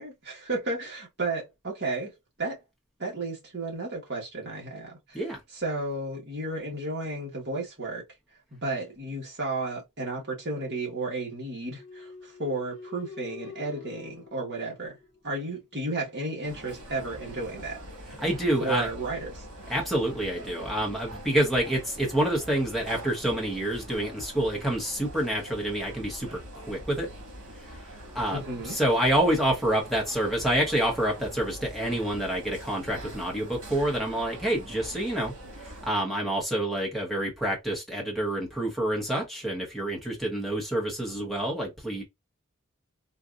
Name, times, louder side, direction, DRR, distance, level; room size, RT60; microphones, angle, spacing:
voice 1, 0.0-2.1 2.4-2.6 3.0-5.2 5.5-8.0 8.5-15.0 15.2-17.8 18.6-19.4 28.3-28.8, right 2 dB, 50° right, 1.4 m, -33 dB
sound 1, 11.7-15.5, left 6 dB, 60° left, 0.9 m, -46 dB
sound 2, 16.4-35.9, right 1 dB, 80° right, 1.7 m, -43 dB
voice 2, 18.2-18.9 19.7-27.1 27.6-27.8 28.1-42.0, right 1 dB, ahead, 0.9 m, -28 dB
3.9 x 2.5 x 2.4 m
head